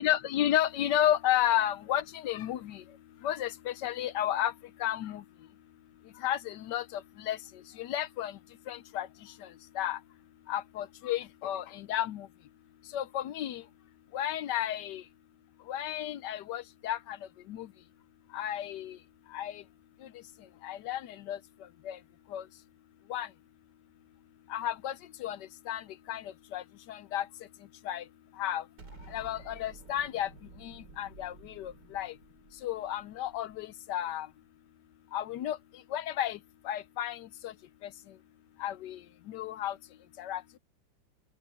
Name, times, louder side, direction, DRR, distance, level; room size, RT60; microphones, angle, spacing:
voice 1, 0.0-2.8 3.2-4.5 4.8-5.2 6.2-7.4 7.8-8.3 8.7-9.1 9.8-10.0 10.5-12.3 12.9-13.6 14.1-15.0 15.7-17.2 17.5-17.7 18.3-19.0 19.3-19.6 20.6-21.0 21.3-21.4 21.9-22.0 22.3-22.4 23.1-23.3 24.5-24.9 25.2-25.4 25.7-25.8 26.1-26.2 26.5-26.6 26.9-27.2 27.9-28.0 28.4-28.6 29.1-30.3 30.6-32.1 32.6-34.3 35.1-35.6 35.9-36.4 36.6-37.5 38.6-39.0 39.3-39.7 40.2-40.6, left 11 dB, 75° left, 1.2 m, -32 dB
Explosion, 28.8-34.0, right 4 dB, 70° right, 3.0 m, -53 dB
open air
omnidirectional pair, 2.0 m